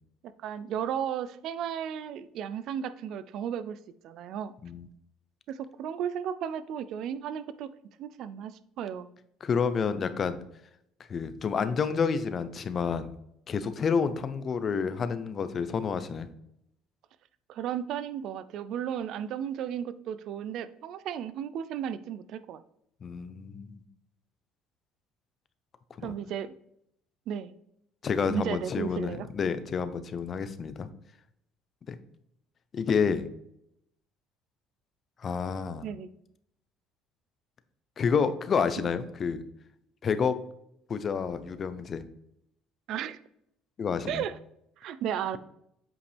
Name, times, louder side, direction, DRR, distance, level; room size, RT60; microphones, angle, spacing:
voice 1, 0.4-3.8 4.0-4.5 5.5-7.7 8.0-9.1 17.5-22.6 26.0-26.5 27.3-27.5 28.3-29.3 35.8-36.1 38.8-38.9 42.9-43.2 44.1-44.4 44.8-45.4, right 9 dB, 60° right, 14 dB, 0.4 m, -34 dB
voice 2, 9.4-10.4 11.1-13.1 13.5-16.3 23.0-23.8 26.0-26.1 28.0-30.9 31.9-32.0 32.7-33.2 35.2-35.9 38.0-39.4 40.0-40.4 40.9-42.0 43.8-44.2, left 6 dB, 35° left, 12 dB, 0.6 m, -29 dB
8.1 x 5.0 x 3.4 m, 0.76 s
cardioid pair, 120°, 0 cm